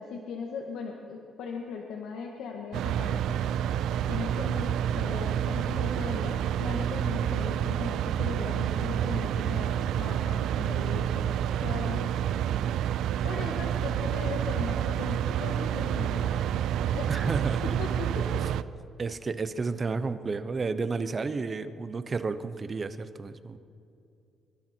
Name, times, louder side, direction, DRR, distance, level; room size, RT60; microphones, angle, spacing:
voice 1, 0.0-3.4 4.1-12.1 13.2-16.4 16.9-17.1 17.8-18.4, left 5 dB, 80° left, 1 dB, 1.9 m, -38 dB
sound 1, 2.7-18.6, right 10 dB, 80° right, 0.5 m, -29 dB
voice 2, 17.1-17.8 19.0-23.6, right 4 dB, 25° right, 11 dB, 0.8 m, -32 dB
24.5 x 23.5 x 4.5 m, 2.7 s
cardioid pair, 180°, 0 cm